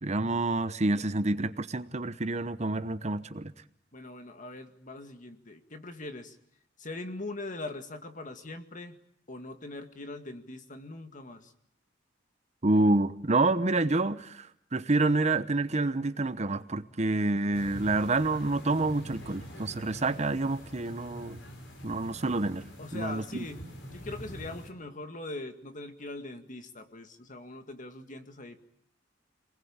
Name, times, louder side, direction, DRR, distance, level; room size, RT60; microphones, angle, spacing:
voice 1, 0.0-3.5 12.6-21.4 21.8-22.6 22.9-23.2, right 2 dB, 35° right, 12 dB, 1.0 m, -28 dB
voice 2, 3.9-6.4 6.8-9.0 9.3-11.5 22.8-23.6 23.9-28.6, left 2 dB, 45° left, 7 dB, 2.1 m, -41 dB
sound 1, 17.5-24.7, equal, 65° left, 5.3 m, -45 dB
27.5 x 20.0 x 8.8 m, 0.71 s
head